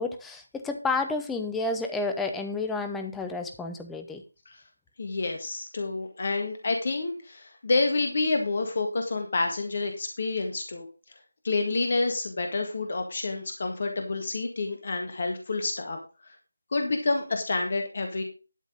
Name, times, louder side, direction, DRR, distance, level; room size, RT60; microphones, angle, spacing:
voice 1, 0.0-4.2, left 3 dB, 5° left, 5 dB, 0.8 m, -30 dB
voice 2, 5.0-10.9 11.4-16.4 16.7-18.2, left 3 dB, 40° left, 5 dB, 1.7 m, -28 dB
12.0 x 6.3 x 5.0 m, 0.33 s
figure-of-eight pair, 160°, 0 cm